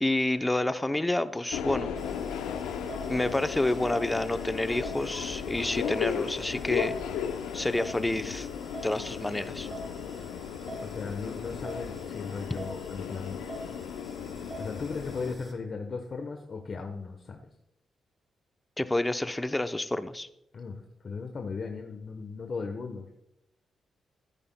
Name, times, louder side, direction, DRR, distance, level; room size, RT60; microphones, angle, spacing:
voice 1, 0.0-1.9 3.1-6.9 7.5-8.5 8.8-9.7 18.8-20.3, left 1 dB, 15° left, 11 dB, 0.6 m, -29 dB
Subway metro underground, 1.5-15.3, left 7 dB, 90° left, 0.6 m, -35 dB
sound 1, 1.9-15.5, right 2 dB, 35° right, 4.2 m, -46 dB
voice 2, 10.8-13.4 14.6-17.4 20.5-23.2, left 4 dB, 55° left, 5 dB, 1.0 m, -37 dB
13.5 x 9.9 x 2.2 m, 0.85 s
supercardioid pair, 50°, 0 cm